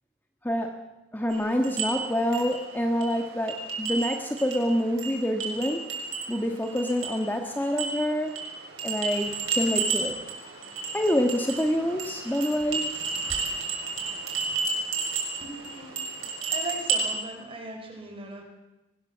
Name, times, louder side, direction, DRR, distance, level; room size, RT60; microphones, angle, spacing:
voice 1, 0.4-0.8 1.1-5.9 6.3-8.3 8.8-10.1 10.9-12.9, equal, 10° left, 3 dB, 1.6 m, -27 dB
sound 1, 1.3-17.2, right 4 dB, 70° right, 6.8 m, -32 dB
voice 2, 15.4-15.9 16.2-18.4, right 2 dB, 30° right, 3 dB, 5.5 m, -38 dB
23.0 x 20.5 x 7.4 m, 1.0 s
head